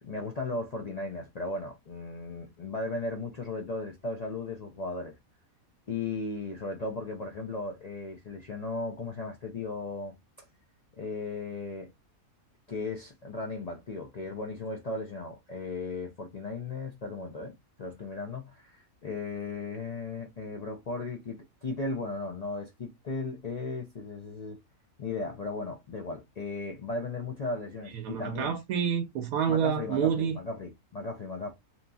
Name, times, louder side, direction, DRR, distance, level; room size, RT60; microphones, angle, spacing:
voice 1, 0.0-5.1 5.9-10.1 11.0-11.9 12.7-17.5 17.8-24.6 25.0-28.6 29.5-31.5, left 3 dB, 80° left, 0.3 m, -36 dB
voice 2, 27.9-30.4, right 8 dB, 80° right, 1.0 m, -28 dB
2.9 x 2.5 x 2.3 m
omnidirectional pair, 1.5 m